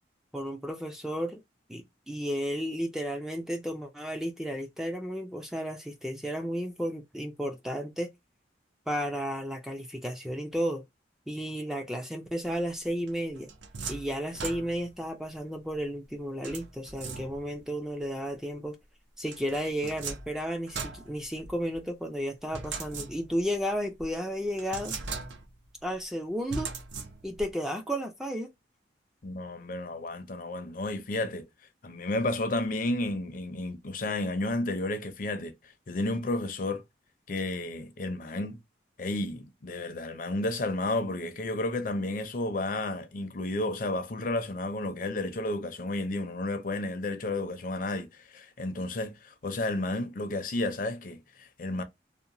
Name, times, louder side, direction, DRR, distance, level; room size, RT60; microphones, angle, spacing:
voice 1, 0.3-1.4 1.7-8.1 8.9-10.8 11.3-13.5 13.9-18.8 19.2-25.0 25.8-26.7 27.2-28.5, equal, 5° right, 0.3 m, -33 dB
sound 1, 13.1-15.0 16.4-17.6 19.3-21.8 22.5-23.5 24.0-24.1 24.6-25.7 26.5-27.5, right 4 dB, 85° right, 0.6 m, -39 dB
voice 2, 29.2-31.5 31.8-36.8 37.3-38.6 39.0-51.8, left 2 dB, 50° left, 0.5 m, -32 dB
2.9 x 2.1 x 2.5 m
head